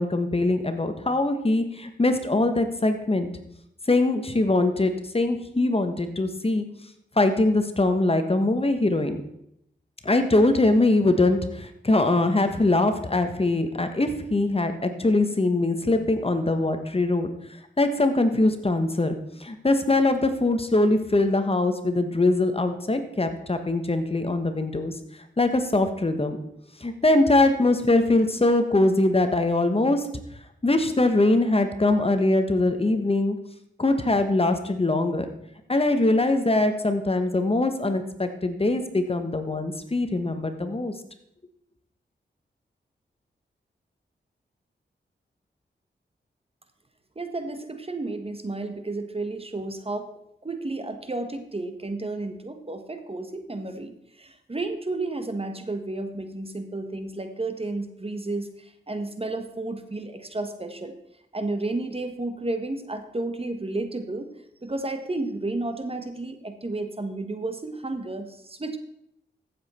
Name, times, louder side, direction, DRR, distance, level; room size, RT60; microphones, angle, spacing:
voice 1, 0.0-3.3 3.9-6.6 7.2-9.2 10.0-17.3 17.8-19.1 19.4-24.9 25.4-26.4 26.8-30.0 30.6-33.4 33.8-35.3 35.7-40.9, left 2 dB, 30° left, 8 dB, 1.3 m, -22 dB
voice 2, 47.1-50.1 50.4-60.9 61.3-64.3 64.6-68.8, right 2 dB, 30° right, 7 dB, 1.3 m, -32 dB
15.0 x 7.4 x 4.4 m, 0.76 s
cardioid pair, 55°, 19 cm